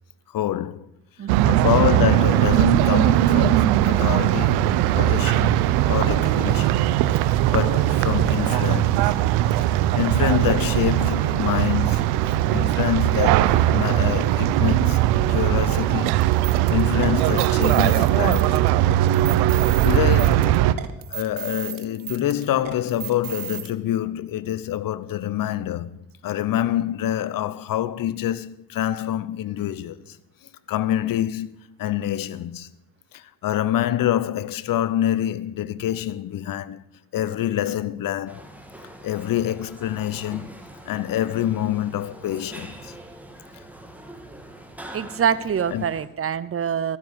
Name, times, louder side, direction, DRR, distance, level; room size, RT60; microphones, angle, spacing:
voice 1, 0.3-0.9 1.4-4.6 5.0-5.6 5.9-6.8 7.5-9.1 9.9-15.0 15.3-16.2 16.7-18.8 19.8-20.5 21.1-26.0 26.2-30.2 30.7-32.7 33.1-36.8 37.1-38.4 39.0-40.4 40.9-42.9 45.7-45.8, left 12 dB, 60° left, 0.8 m, -26 dB
voice 2, 1.2-1.6 44.9-47.0, right 8 dB, 35° right, 0.8 m, -25 dB
sound 1, 1.3-20.7, right 13 dB, 85° right, 0.7 m, -19 dB
sound 2, 16.2-23.7, right 12 dB, 65° right, 1.2 m, -36 dB
sound 3, 38.3-46.1, right 1 dB, 5° right, 2.5 m, -43 dB
14.0 x 7.4 x 8.0 m
supercardioid pair, 55°, 37 cm